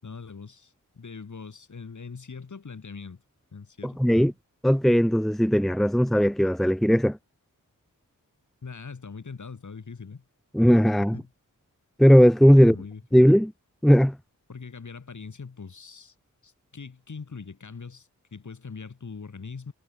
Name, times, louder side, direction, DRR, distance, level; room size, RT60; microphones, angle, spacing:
voice 1, 0.0-3.2 3.5-4.3 8.6-10.2 11.1-11.3 12.5-13.0 14.5-16.1 16.4-19.7, left 5 dB, 65° left, 7.6 m, -41 dB
voice 2, 3.8-4.3 4.6-7.2 10.5-11.2 12.0-12.8 13.1-13.5 13.8-14.2, equal, ahead, 0.8 m, -18 dB
wide cardioid pair, 100°, 32 cm